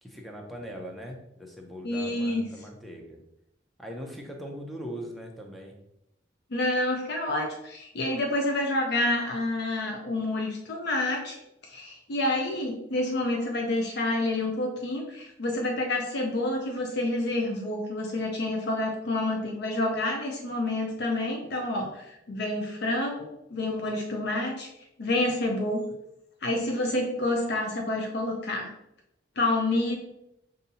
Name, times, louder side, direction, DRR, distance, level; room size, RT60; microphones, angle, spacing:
voice 1, 0.0-3.2 3.8-5.8, equal, ahead, 1 dB, 0.6 m, -40 dB
voice 2, 1.8-2.5 6.5-11.4 11.7-24.7 25.0-25.8 26.4-28.7 29.4-30.0, left 2 dB, 65° left, 2 dB, 0.5 m, -28 dB
5.3 x 2.7 x 2.7 m, 0.83 s
head